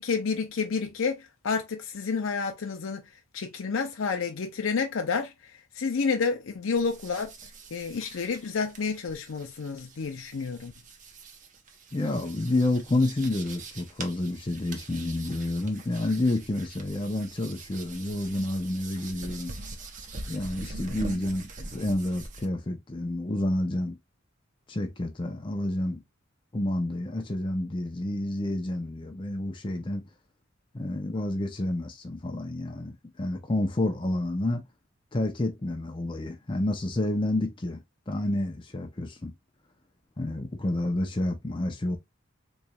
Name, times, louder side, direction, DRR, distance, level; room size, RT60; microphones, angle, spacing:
voice 1, 0.0-3.0 3.3-5.3 5.8-7.3 7.7-10.7, left 5 dB, 85° left, 0.6 m, -29 dB
sound 1, 6.8-22.5, right 3 dB, 40° right, 0.7 m, -43 dB
voice 2, 11.9-19.5 20.3-24.0 24.7-26.0 26.5-30.0 30.7-34.6 35.1-37.8 38.1-39.3 40.2-42.0, left 1 dB, 25° left, 0.6 m, -29 dB
4.1 x 3.1 x 2.3 m
head